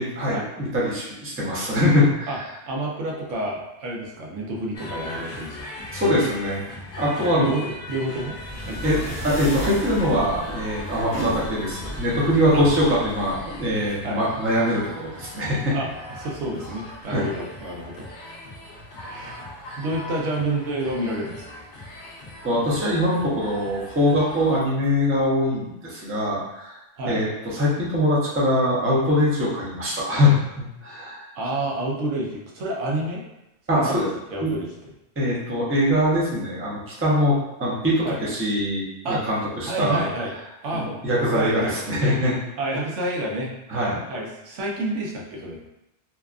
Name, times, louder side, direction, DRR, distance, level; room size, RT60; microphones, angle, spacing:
voice 1, 0.0-2.4 5.9-6.6 7.0-7.5 8.8-9.0 9.2-15.7 17.1-17.3 22.4-26.8 27.1-31.2 33.7-34.1 34.4-34.5 35.2-40.0 40.7-42.3 43.7-44.0, left 1 dB, 15° right, -6 dB, 0.4 m, -22 dB
voice 2, 2.7-5.7 7.3-9.0 12.5-12.6 14.0-14.2 15.7-15.9 16.2-18.1 19.0-19.4 19.8-21.4 27.0-27.2 31.4-33.2 33.7-34.0 34.3-34.9 38.0-38.2 39.0-39.2 39.7-40.3 40.6-40.9 41.3-41.7 42.6-43.5 44.1-45.7, right 1 dB, 90° right, -2 dB, 1.0 m, -29 dB
sound 1, 4.7-24.6, left 1 dB, 55° left, 0.6 m, -39 dB
sound 2, 8.2-14.0, right 1 dB, 5° left, 0.8 m, -34 dB
2.7 x 2.3 x 2.3 m, 0.89 s
omnidirectional pair, 1.2 m